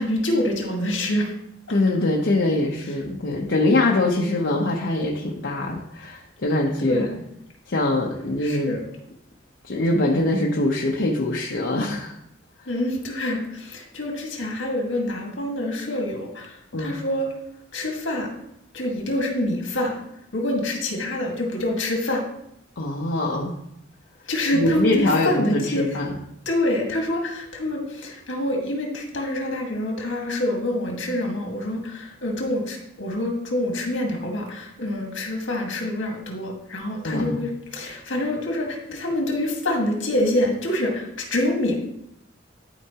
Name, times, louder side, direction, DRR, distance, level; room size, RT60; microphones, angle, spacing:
voice 1, 0.0-1.3 6.8-7.2 8.4-8.8 12.7-17.3 17.7-18.3 18.7-19.9 20.3-22.2 24.3-26.0 26.5-41.8, left 1 dB, 85° left, 1 dB, 1.7 m, -26 dB
voice 2, 1.7-7.1 7.7-8.8 9.6-12.1 12.6-12.7 16.7-16.9 22.8-23.5 24.5-26.2 37.0-37.4, left 2 dB, 70° left, -2 dB, 0.8 m, -23 dB
12.0 x 4.6 x 2.9 m, 0.78 s
head